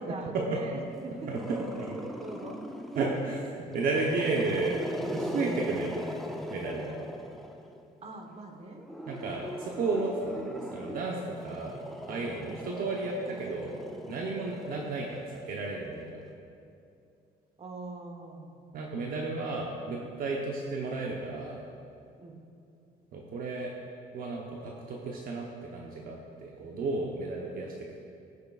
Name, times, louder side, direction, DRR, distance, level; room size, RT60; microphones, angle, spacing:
voice 1, 0.0-1.2 1.5-2.6 8.0-8.8 14.6-14.7 17.6-18.6 22.2-22.4, right 2 dB, 35° right, 3 dB, 1.2 m, -41 dB
Growling, 1.3-3.1 3.6-7.8 8.8-15.3, equal, ahead, 0.6 m, -40 dB
voice 2, 1.3-1.9 2.9-6.1 6.5-7.0 9.1-11.8 12.1-13.8 14.1-16.2 18.7-21.6 23.1-23.7 24.1-28.0, right 3 dB, 60° right, -1 dB, 0.9 m, -33 dB
17.0 x 6.7 x 2.4 m, 2.6 s
cardioid pair, 110°, 17 cm